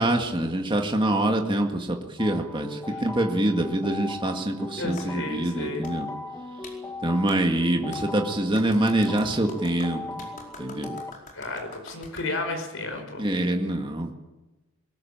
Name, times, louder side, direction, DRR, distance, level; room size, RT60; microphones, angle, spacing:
voice 1, 0.0-6.1 7.0-10.3 10.6-11.0 13.2-14.1, right 1 dB, 20° right, 3 dB, 1.9 m, -25 dB
sound 1, 2.2-11.1, left 2 dB, 15° left, 1.3 m, -38 dB
voice 2, 4.8-5.9 11.3-13.3, left 2 dB, 60° left, 5 dB, 5.1 m, -32 dB
Clapping, 5.0-5.1 5.8-5.9 6.6-6.8 7.3-7.4 7.9-8.0 8.5-12.3, left 3 dB, 35° left, 4.8 m, -44 dB
22.0 x 19.5 x 8.8 m, 1.1 s
head